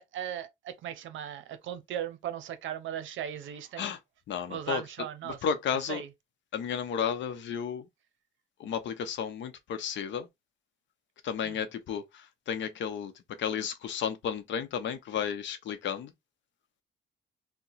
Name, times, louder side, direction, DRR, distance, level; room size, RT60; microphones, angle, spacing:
voice 1, 0.0-3.9 4.5-5.4 5.9-6.1 11.4-11.6, right 10 dB, 75° right, 0.7 m, -37 dB
voice 2, 4.3-4.8 5.2-6.0 6.5-7.9 8.6-10.3 11.2-13.1 13.4-16.1, left 7 dB, 70° left, 0.7 m, -33 dB
2.8 x 2.1 x 4.0 m
cardioid pair, 90°, 20 cm